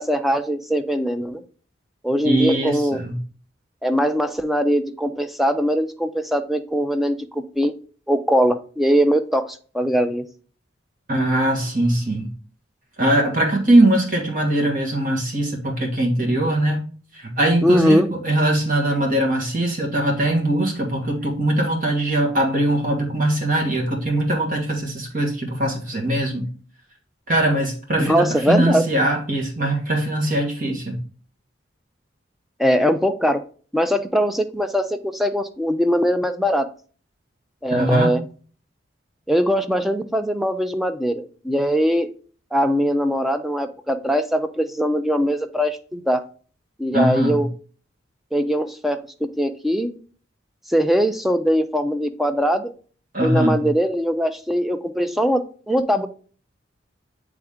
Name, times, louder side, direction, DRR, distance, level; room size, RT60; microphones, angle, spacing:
voice 1, 0.0-1.4 2.0-3.0 3.8-7.7 8.1-10.2 17.6-18.1 28.0-28.8 32.6-33.4 33.7-36.7 37.6-38.2 39.3-42.1 42.5-46.2 46.8-47.5 48.3-49.9 50.7-52.7 53.2-56.1, equal, ahead, 7 dB, 0.4 m, -21 dB
voice 2, 2.2-3.2 11.1-12.3 13.0-16.8 17.1-26.4 27.3-31.0 37.7-38.1 46.9-47.5 53.1-53.7, right 1 dB, 45° right, 1 dB, 1.4 m, -21 dB
8.0 x 3.5 x 3.5 m, 0.41 s
head